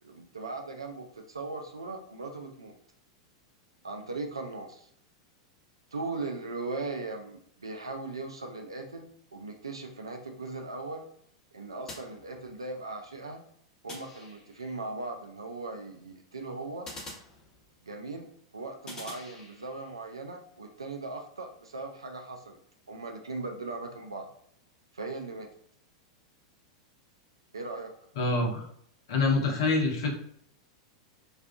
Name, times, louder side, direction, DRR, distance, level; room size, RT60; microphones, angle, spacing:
voice 1, 0.0-2.7 3.8-4.9 5.9-11.1 11.5-13.4 13.8-16.9 17.9-18.3 18.5-22.6 22.9-24.3 24.9-25.5 27.5-27.9, right 3 dB, 80° right, 3 dB, 0.4 m, -38 dB
sound 1, 11.9-12.8 13.9-14.8 16.8-18.0 18.9-19.9, left 2 dB, 25° left, 0.9 m, -46 dB
voice 2, 28.2-28.7 29.1-30.2, left 3 dB, 60° left, 0 dB, 0.7 m, -26 dB
2.4 x 2.2 x 2.4 m, 0.67 s
figure-of-eight pair, 95°, 3 cm